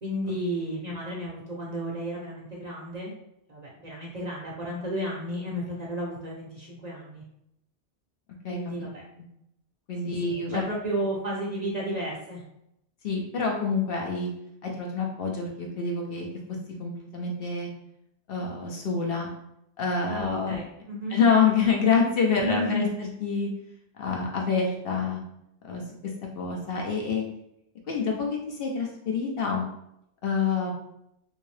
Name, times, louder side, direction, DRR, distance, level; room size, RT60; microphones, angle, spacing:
voice 1, 0.0-3.1 3.5-7.2 8.5-9.0 10.2-12.4 20.1-21.2 22.4-22.9, equal, 40° right, -4 dB, 0.7 m, -32 dB
voice 2, 9.9-10.6 13.0-14.3 14.6-16.3 16.8-17.7 18.3-19.3 19.8-20.6 21.1-23.5 24.0-25.2 25.6-25.8 26.4-27.2 27.9-29.6 30.2-30.7, left 5 dB, 60° left, 0 dB, 0.8 m, -26 dB
3.4 x 2.7 x 3.2 m, 0.79 s
omnidirectional pair, 1.2 m